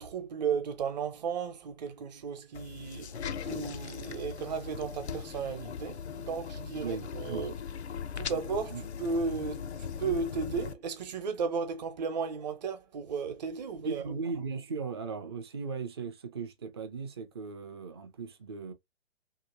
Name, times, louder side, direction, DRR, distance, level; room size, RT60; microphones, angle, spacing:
voice 1, 0.0-7.5 8.2-14.0, right 5 dB, 40° right, 0.9 m, -35 dB
sound 1, 2.5-10.7, left 7 dB, 85° left, 0.6 m, -39 dB
voice 2, 6.7-7.5 8.2-8.4 8.7-8.8 13.8-18.7, right 5 dB, 25° right, 0.4 m, -38 dB
2.9 x 2.8 x 2.6 m
figure-of-eight pair, 135°, 32 cm